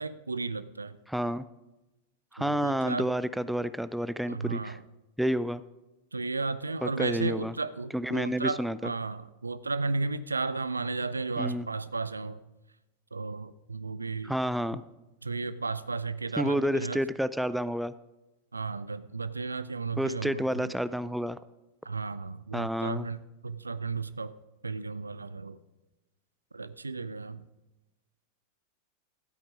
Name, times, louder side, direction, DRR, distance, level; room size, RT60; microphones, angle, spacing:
voice 1, 0.0-1.0 2.4-3.1 4.3-4.8 6.1-12.4 13.1-14.3 15.2-17.0 18.5-20.7 21.8-24.3 24.6-25.6 26.5-27.5, right 3 dB, 80° right, 16 dB, 0.4 m, -34 dB
voice 2, 1.1-1.4 2.3-4.8 5.2-5.6 6.8-7.5 7.9-8.9 11.4-11.7 14.2-14.8 16.4-17.9 20.0-21.4 22.5-23.1, equal, ahead, 15 dB, 0.4 m, -30 dB
12.5 x 8.7 x 5.0 m, 1.0 s
figure-of-eight pair, 90°, 0 cm